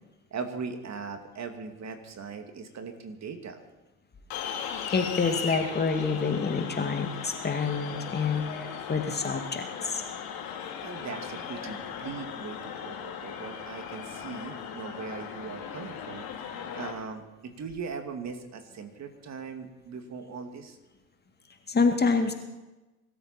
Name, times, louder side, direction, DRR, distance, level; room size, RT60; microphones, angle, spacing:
voice 1, 0.3-3.6 10.8-16.3 16.7-20.8, right 5 dB, 35° right, 6 dB, 2.5 m, -39 dB
sound 1, 4.3-16.9, left 7 dB, 55° left, 3.6 m, -38 dB
voice 2, 4.9-10.0 21.7-22.3, left 4 dB, 20° left, 5 dB, 2.1 m, -27 dB
23.5 x 13.5 x 4.4 m, 1.1 s
hypercardioid pair, 70°, 44 cm